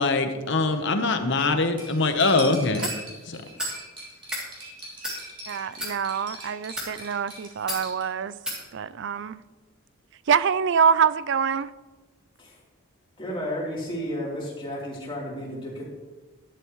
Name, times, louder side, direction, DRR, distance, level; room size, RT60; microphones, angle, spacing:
voice 1, 0.0-2.8 3.3-3.4, left 3 dB, 55° left, 1.0 m, -23 dB
Cutlery silverware, 1.8-8.0, right 1 dB, 25° right, 3.7 m, -41 dB
sound 1, 2.8-3.0 3.6-3.8 4.2-4.5 5.0-5.2 5.7-5.9 6.6-6.9 7.7-7.8 8.5-8.6, equal, 5° right, 2.7 m, -31 dB
voice 2, 5.5-8.4 8.7-9.4 10.3-11.7, right 7 dB, 55° right, 0.3 m, -25 dB
voice 3, 13.2-15.8, equal, 25° left, 3.4 m, -32 dB
13.5 x 11.0 x 3.1 m
head